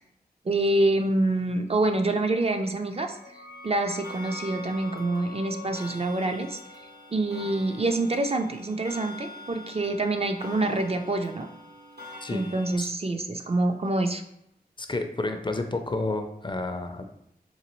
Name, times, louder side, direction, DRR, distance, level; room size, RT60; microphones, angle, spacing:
voice 1, 0.4-6.6 7.1-11.5 12.3-14.2, right 2 dB, 40° right, 5 dB, 0.4 m, -26 dB
sound 1, 2.8-8.2, left 2 dB, 80° left, 0.7 m, -45 dB
Clock, 4.0-12.8, left 2 dB, 75° right, 0.9 m, -45 dB
voice 2, 14.8-17.0, left 2 dB, 30° left, 6 dB, 0.4 m, -30 dB
3.9 x 2.9 x 2.9 m, 0.76 s
wide cardioid pair, 65°, 16 cm